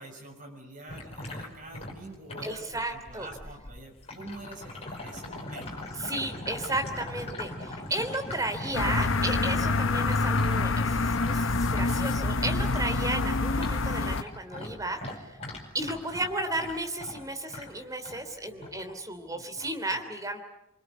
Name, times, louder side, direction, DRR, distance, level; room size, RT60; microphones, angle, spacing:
voice 1, 0.0-5.9 18.4-18.8 19.2-19.5 19.9-20.0, right 1 dB, 40° right, 2 dB, 6.4 m, -46 dB
sound 1, 0.9-12.8 13.1-18.2 18.6-18.9 19.6-19.7, left 1 dB, 30° left, 5.3 m, -41 dB
voice 2, 2.4-3.3 5.9-15.4 15.7-20.4, right 2 dB, 15° right, 5 dB, 3.1 m, -34 dB
sound 2, 8.7-14.2, left 3 dB, 70° left, 0.9 m, -26 dB
26.5 x 24.5 x 8.2 m, 0.87 s
head